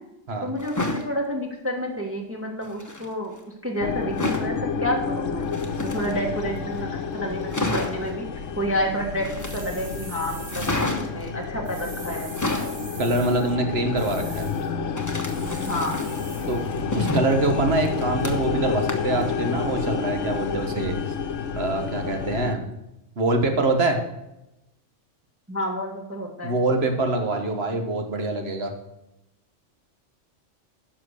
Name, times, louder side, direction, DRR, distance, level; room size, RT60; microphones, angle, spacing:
voice 1, 0.4-3.4 3.6-5.5 5.8-8.2 8.6-10.7 11.1-12.3 15.6-16.0 25.5-26.5, equal, 10° right, 0 dB, 1.2 m, -29 dB
sound 1, 0.6-1.1 2.6-3.1 4.2-4.5 5.4-6.4 6.8-6.9 7.2-7.3 7.5-8.1 9.2-9.9 10.5-11.3 12.1-12.8 15.0-16.2 16.6-18.6 18.9-19.2 19.6-19.7, left 2 dB, 15° left, 1.0 m, -29 dB
sound 2, 3.8-22.5, left 5 dB, 70° left, 1.1 m, -30 dB
sound 3, 9.4-10.9 11.6-13.5 14.0-14.7 15.3-16.6, right 4 dB, 90° right, 1.9 m, -43 dB
voice 2, 13.0-14.5 16.5-16.6 16.9-21.0 21.6-22.6 23.2-24.0 26.4-28.7, right 2 dB, 55° right, 5 dB, 1.5 m, -24 dB
10.5 x 6.2 x 6.4 m, 0.91 s
omnidirectional pair, 1.3 m